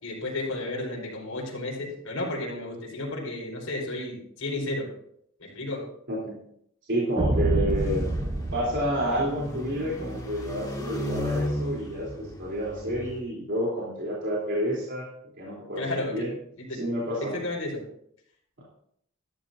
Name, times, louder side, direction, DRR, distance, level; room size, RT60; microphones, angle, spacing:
voice 1, 0.0-4.9 5.4-5.9 15.8-16.3 16.6-16.9 17.2-17.8, left 2 dB, 80° left, -2 dB, 5.3 m, -32 dB
voice 2, 6.9-8.1 8.5-15.1 15.4-16.3 16.8-17.4, equal, 60° right, -6 dB, 3.7 m, -29 dB
sound 1, 7.2-9.8, right 1 dB, 25° right, 1.0 m, -27 dB
sound 2, 7.7-13.2, left 1 dB, 20° left, 2.2 m, -35 dB
15.0 x 13.0 x 2.8 m, 0.69 s
head